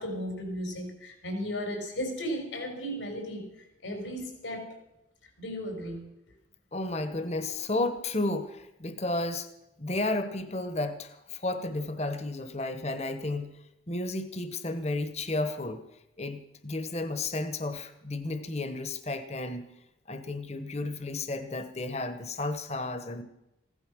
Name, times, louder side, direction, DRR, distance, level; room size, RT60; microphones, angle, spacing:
voice 1, 0.0-4.7 5.4-6.0, equal, 85° left, 4 dB, 4.5 m, -35 dB
voice 2, 6.7-9.5 9.8-13.5 13.9-15.8 16.2-19.7 20.1-23.2, left 2 dB, 35° left, 10 dB, 1.1 m, -32 dB
16.0 x 12.0 x 6.3 m, 0.89 s
head